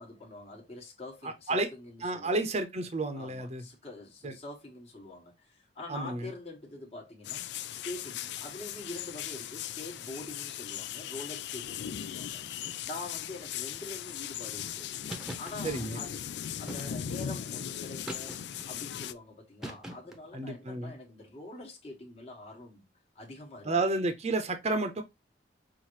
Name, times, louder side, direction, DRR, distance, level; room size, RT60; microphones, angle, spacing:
voice 1, 0.0-2.4 3.1-15.0 15.4-16.2 16.5-18.4 18.7-22.9 23.1-23.9, left 2 dB, 35° left, 1.2 m, -45 dB
voice 2, 1.2-1.7 2.0-3.6 4.2-4.3 5.9-6.3 15.6-16.0 20.3-20.9 23.6-25.0, right 2 dB, 35° right, 0.7 m, -31 dB
sound 1, 7.2-19.1, left 10 dB, 65° left, 0.3 m, -38 dB
sound 2, 15.1-15.5 16.7-17.2 18.1-18.7 19.6-20.3, right 1 dB, 5° right, 0.8 m, -41 dB
5.7 x 2.5 x 3.0 m
head